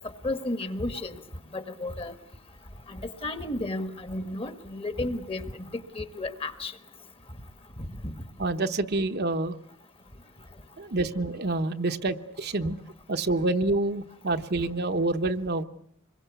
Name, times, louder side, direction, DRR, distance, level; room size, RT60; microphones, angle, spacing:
voice 1, 0.2-1.2 1.5-2.1 2.9-5.7 5.9-6.7 7.8-8.2, left 2 dB, 25° left, 11 dB, 1.4 m, -33 dB
voice 2, 8.4-9.6 10.8-12.8 13.1-15.6, right 2 dB, 50° right, 7 dB, 1.0 m, -27 dB
26.0 x 22.5 x 8.2 m, 0.70 s
head